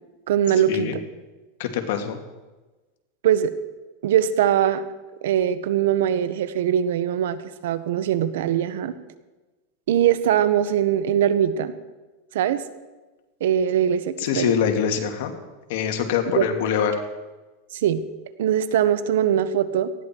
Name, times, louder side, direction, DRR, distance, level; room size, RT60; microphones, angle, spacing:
voice 1, 0.3-0.9 3.2-3.5 4.0-4.8 5.2-8.9 9.9-11.7 12.3-12.6 13.4-14.5 16.3-16.5 17.7-18.0 18.4-19.9, right 10 dB, 80° right, 13 dB, 1.1 m, -21 dB
voice 2, 1.6-2.2 14.2-15.3 15.7-16.9, left 8 dB, 70° left, 4 dB, 2.4 m, -24 dB
18.5 x 14.0 x 4.6 m, 1.2 s
supercardioid pair, 145°, 0 cm